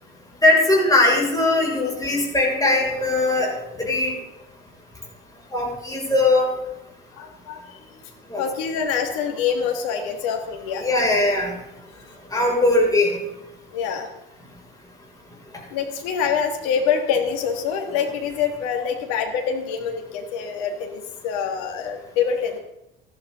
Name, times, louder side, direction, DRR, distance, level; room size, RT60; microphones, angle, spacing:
voice 1, 0.4-3.5 3.8-4.1 5.5-6.5 8.3-8.4 10.8-11.5 12.3-13.2, left 2 dB, 10° left, -3 dB, 7.2 m, -19 dB
voice 2, 7.1-8.1 8.4-10.9 13.7-14.1 15.7-22.6, left 7 dB, 55° left, 3 dB, 2.8 m, -25 dB
19.0 x 13.5 x 4.2 m, 0.89 s
figure-of-eight pair, 65°, 29 cm